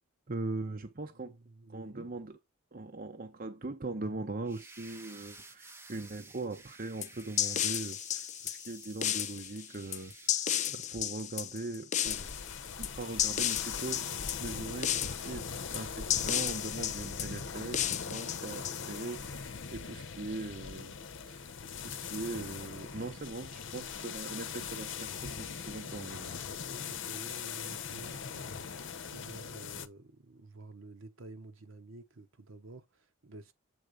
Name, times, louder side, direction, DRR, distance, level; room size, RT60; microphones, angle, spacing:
voice 1, 0.3-1.4 1.7-2.4 2.7-12.3 12.8-20.9 21.3-21.5 21.8-26.3, right 2 dB, 40° right, 0.8 m, -41 dB
voice 2, 1.1-2.1 26.7-28.8 29.1-33.5, right 2 dB, 65° right, 1.2 m, -50 dB
sound 1, 4.4-10.3, right 3 dB, 10° right, 0.7 m, -53 dB
sound 2, 7.0-19.2, left 10 dB, 35° left, 0.5 m, -33 dB
sound 3, 12.0-29.9, left 6 dB, 60° left, 0.8 m, -41 dB
8.0 x 3.9 x 5.1 m
head